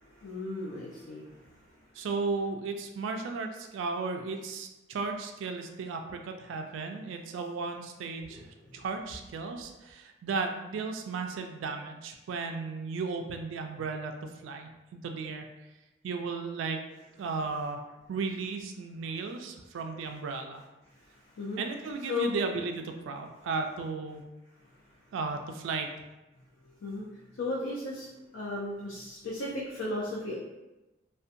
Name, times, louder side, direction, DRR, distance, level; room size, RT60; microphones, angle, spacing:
voice 1, 0.0-1.6 8.2-8.8 21.1-21.6 22.1-22.4 26.8-27.0 27.3-28.1 28.3-30.3, left 2 dB, 85° left, -4 dB, 0.4 m, -36 dB
voice 2, 2.0-14.2 14.4-15.5 16.0-16.8 17.2-17.8 18.1-20.6 21.6-24.2 25.1-25.9, right 4 dB, 85° right, 4 dB, 0.3 m, -35 dB
2.6 x 2.1 x 2.5 m, 1.0 s
head